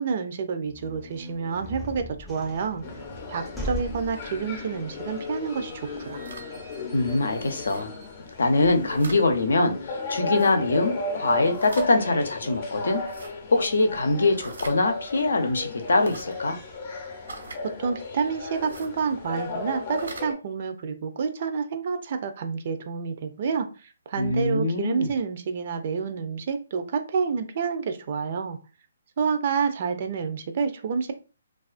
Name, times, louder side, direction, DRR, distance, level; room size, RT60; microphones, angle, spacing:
voice 1, 0.0-2.8 3.3-6.2 17.8-23.7 24.1-28.6 29.2-31.1, right 5 dB, 45° right, 0.5 m, -28 dB
sound 1, 0.6-9.3, equal, 5° left, 0.5 m, -41 dB
sound 2, 2.8-20.3, left 3 dB, 40° left, 0.7 m, -35 dB
sound 3, 5.9-6.5 7.6-7.9 8.7-9.2 10.3-10.5 11.4-11.9 13.0-13.3 14.4-14.8 15.9-16.3 17.3-17.6 18.6-18.9 19.8-20.3, right 3 dB, 85° right, 1.0 m, -43 dB
voice 2, 6.9-7.9 8.4-13.0 13.5-16.6 24.2-25.1, left 2 dB, 80° left, 0.6 m, -23 dB
2.3 x 2.3 x 2.4 m
hypercardioid pair, 150°, 0 cm